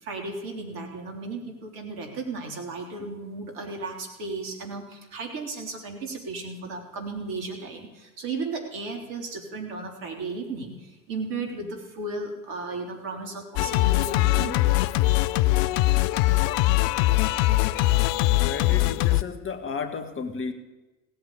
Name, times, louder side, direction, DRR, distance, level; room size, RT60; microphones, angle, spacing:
voice 1, 0.0-14.6, right 3 dB, 55° right, 3 dB, 3.5 m, -35 dB
Singing, 13.6-19.2, left 17 dB, 50° left, 0.5 m, -22 dB
voice 2, 18.4-20.5, left 5 dB, 30° left, 8 dB, 1.8 m, -33 dB
17.0 x 8.0 x 8.5 m, 1.1 s
figure-of-eight pair, 70°, 39 cm